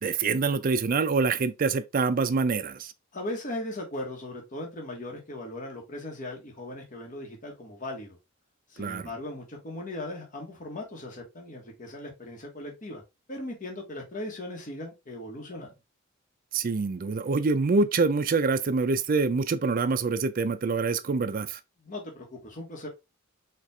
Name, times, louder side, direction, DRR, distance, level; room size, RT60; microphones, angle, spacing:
voice 1, 0.0-2.9 8.8-9.1 16.5-21.6, right 4 dB, 45° right, 0.4 m, -25 dB
voice 2, 3.1-8.2 8.7-13.0 13.3-15.7 21.8-22.9, left 1 dB, 40° left, 1.1 m, -38 dB
4.4 x 2.4 x 3.2 m
head